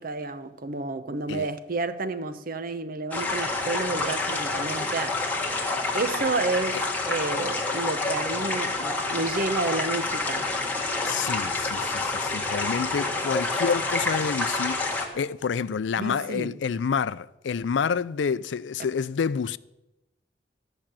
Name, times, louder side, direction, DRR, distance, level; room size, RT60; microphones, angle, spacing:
voice 1, 0.0-5.2 5.9-10.5 16.0-16.6, right 3 dB, 55° right, 0.8 m, -30 dB
sound 1, 3.1-15.1, left 3 dB, 10° left, 1.8 m, -28 dB
voice 2, 11.0-19.6, left 6 dB, 80° left, 0.4 m, -28 dB
14.0 x 6.0 x 8.8 m
head